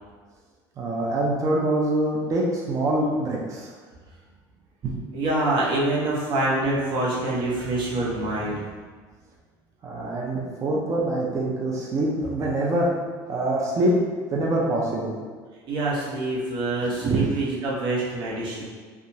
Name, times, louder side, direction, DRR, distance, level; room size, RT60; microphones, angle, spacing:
voice 1, 0.8-3.7 4.8-4.9 9.8-12.9 13.3-14.0 14.3-15.2 16.8-17.3 18.6-18.7, right 1 dB, 35° right, -3 dB, 0.4 m, -25 dB
voice 2, 5.1-8.6 15.7-18.6, right 2 dB, 55° right, -5 dB, 0.9 m, -25 dB
2.8 x 2.3 x 2.7 m, 1.5 s
supercardioid pair, 110°, 10 cm